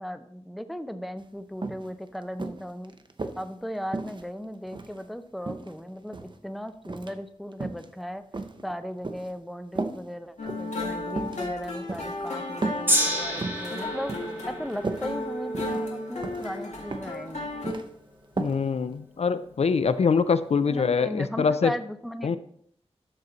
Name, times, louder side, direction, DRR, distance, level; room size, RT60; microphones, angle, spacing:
voice 1, 0.0-2.9 3.4-8.2 8.6-14.1 14.5-17.5 20.7-22.4, equal, ahead, 10 dB, 0.5 m, -37 dB
sound 1, 1.2-1.3 1.6-1.9 2.4-3.4 3.9-5.0 5.4-6.4 6.8-7.2 7.5-7.9 8.3-9.3 9.8-10.0 10.4-10.7 11.1-11.4 11.9-12.1 12.6-12.9 13.2-13.7 14.1-14.4 14.7-15.0 15.5-15.9 16.2-16.5 16.9-17.2 17.4-17.9 18.4-18.6 18.9-19.0, right 3 dB, 45° right, 0.7 m, -34 dB
sound 2, 10.4-17.7, left 2 dB, 85° left, 1.8 m, -34 dB
Gong, 12.9-19.2 20.0-20.1, equal, 20° right, 1.5 m, -32 dB
voice 2, 18.4-21.7 22.2-22.4, left 5 dB, 65° left, 13 dB, 0.4 m, -24 dB
12.5 x 4.1 x 3.9 m, 0.67 s
wide cardioid pair, 75°, 12 cm